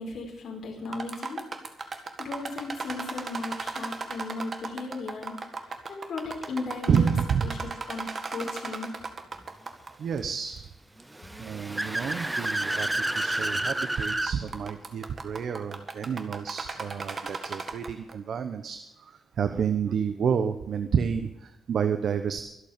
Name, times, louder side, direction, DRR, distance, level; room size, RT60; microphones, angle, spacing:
voice 1, 0.0-1.4 1.8-7.1 7.4-8.9, left 3 dB, 55° left, 0 dB, 4.8 m, -37 dB
sound 1, 0.8-9.9 10.2-10.3 11.0-11.1 11.7-11.8 13.0-13.2 13.6-13.8 14.1-18.1, right 4 dB, 35° right, 1.8 m, -36 dB
voice 2, 6.8-7.7 9.7-10.6 11.4-12.9 13.2-22.4, right 7 dB, 60° right, 9 dB, 0.9 m, -29 dB
Car / Accelerating revving vroom, 11.1-14.3, right 1 dB, 10° right, 0.7 m, -29 dB
24.5 x 8.3 x 5.2 m, 0.94 s
cardioid pair, 140°, 0 cm